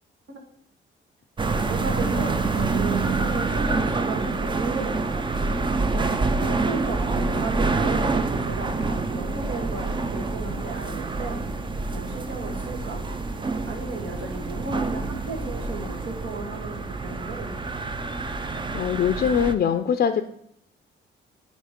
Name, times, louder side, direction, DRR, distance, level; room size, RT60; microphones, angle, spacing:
sound 1, 1.4-19.5, right 3 dB, 25° right, 0.6 m, -27 dB
voice 1, 1.5-5.6 6.3-11.4 11.9-13.0 13.6-17.6, right 3 dB, 70° right, 2 dB, 1.8 m, -35 dB
sound 2, 5.3-19.4, right 3 dB, 45° right, 1.6 m, -39 dB
voice 2, 18.5-20.2, left 8 dB, 50° left, 9 dB, 0.5 m, -23 dB
9.4 x 3.2 x 5.1 m, 0.71 s
cardioid pair, 90°, 20 cm